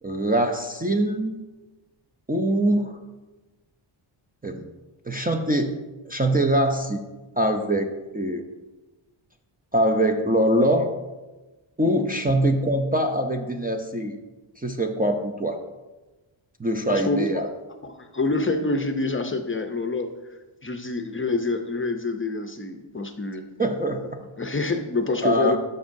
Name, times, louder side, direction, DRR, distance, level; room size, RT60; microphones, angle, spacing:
voice 1, 0.0-1.3 2.3-3.0 4.4-4.7 5.1-5.8 6.1-7.0 7.4-7.9 8.1-8.4 9.7-10.9 11.8-14.2 14.6-15.6 16.6-17.5 23.6-24.2 25.2-25.6, right 1 dB, 20° right, 4 dB, 0.5 m, -23 dB
voice 2, 16.9-17.5 17.8-20.1 20.6-23.4 24.4-25.6, left 3 dB, 25° left, 6 dB, 0.6 m, -27 dB
12.5 x 5.4 x 2.6 m, 1.2 s
wide cardioid pair, 90°, 49 cm